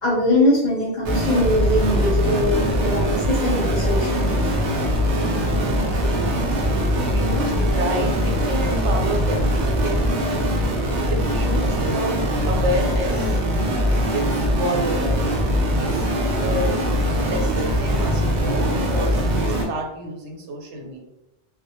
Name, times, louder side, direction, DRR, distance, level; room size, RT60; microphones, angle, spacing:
voice 1, 0.0-4.7, left 1 dB, 55° left, -4 dB, 0.5 m, -22 dB
sound 1, 1.0-19.7, equal, 60° right, 0.5 m, -21 dB
voice 2, 6.2-10.2 10.7-12.1 12.4-13.3 13.9-16.8 17.2-21.0, right 1 dB, 85° right, 2 dB, 0.9 m, -30 dB
2.1 x 2.1 x 2.7 m, 0.87 s
omnidirectional pair, 1.2 m